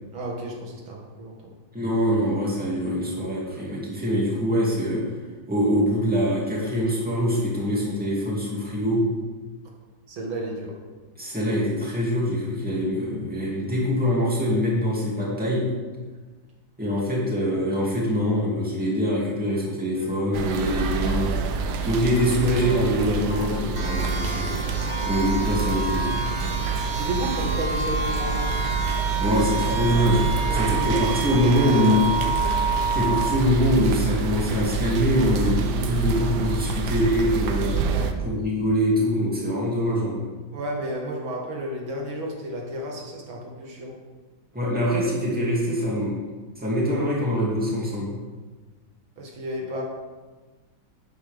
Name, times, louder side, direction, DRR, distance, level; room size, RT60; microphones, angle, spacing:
voice 1, 0.1-1.5 10.1-10.7 26.9-28.5 30.5-32.5 37.9-38.2 40.5-44.0 49.2-49.8, right 1 dB, 80° right, -1 dB, 2.5 m, -32 dB
voice 2, 1.7-5.0 5.5-9.0 11.2-15.7 16.8-21.4 21.8-24.5 25.1-26.1 29.2-32.0 32.9-37.8 38.2-40.3 44.5-46.1 46.6-48.1, equal, 5° right, -5 dB, 2.5 m, -24 dB
sound 1, 19.9-21.9 22.2-22.3 22.6-25.7, left 3 dB, 85° left, 2.2 m, -41 dB
sound 2, 20.3-38.1, right 5 dB, 65° right, 1.2 m, -27 dB
sound 3, 23.7-33.4, right 3 dB, 35° right, 1.5 m, -29 dB
11.5 x 9.2 x 3.6 m, 1.3 s
omnidirectional pair, 2.2 m